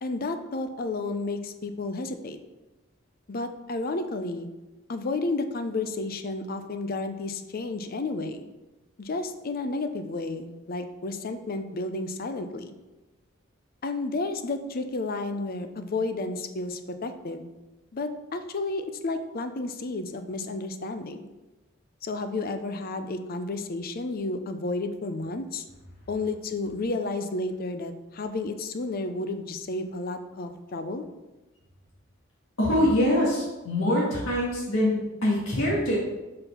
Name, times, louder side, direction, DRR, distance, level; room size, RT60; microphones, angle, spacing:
voice 1, 0.0-2.4 3.3-4.5 4.9-8.4 9.0-12.8 13.8-17.5 17.9-21.2 22.0-25.6 26.1-31.0, left 2 dB, 50° left, 8 dB, 0.6 m, -31 dB
voice 2, 32.6-36.0, left 1 dB, 70° left, -5 dB, 1.8 m, -24 dB
5.4 x 4.4 x 5.5 m, 1.1 s
head